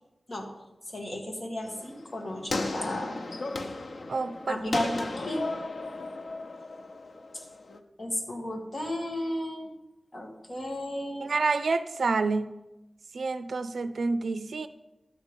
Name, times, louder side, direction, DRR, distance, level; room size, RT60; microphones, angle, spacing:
voice 1, 0.9-3.2 4.5-5.6 7.3-7.4 8.0-9.7 10.1-11.4, left 1 dB, 40° left, 1 dB, 2.2 m, -34 dB
sound 1, 1.6-7.8, left 2 dB, 85° left, 1.0 m, -35 dB
voice 2, 4.1-4.7 11.2-12.5 13.1-14.7, right 4 dB, 85° right, 12 dB, 0.4 m, -28 dB
12.5 x 5.2 x 9.0 m, 1.0 s
wide cardioid pair, 105°, 0 cm